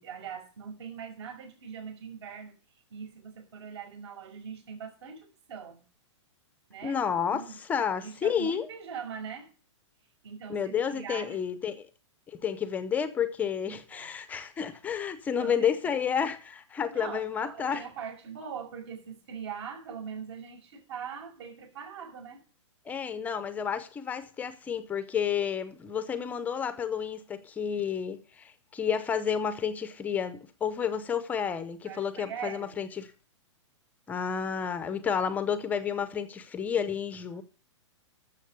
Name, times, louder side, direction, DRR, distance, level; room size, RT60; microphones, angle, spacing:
voice 1, 0.0-2.5 2.9-5.8 6.7-7.0 7.3-7.6 8.0-9.5 10.2-11.4 13.9-14.1 15.4-16.0 16.9-22.4 31.8-32.8 37.3-37.4, right 7 dB, 60° right, 5.7 m, -41 dB
voice 2, 6.8-8.7 10.5-11.8 12.3-17.8 22.8-33.1 34.1-37.4, left 7 dB, 10° left, 0.7 m, -31 dB
12.5 x 7.1 x 6.6 m
hypercardioid pair, 165°, 16 cm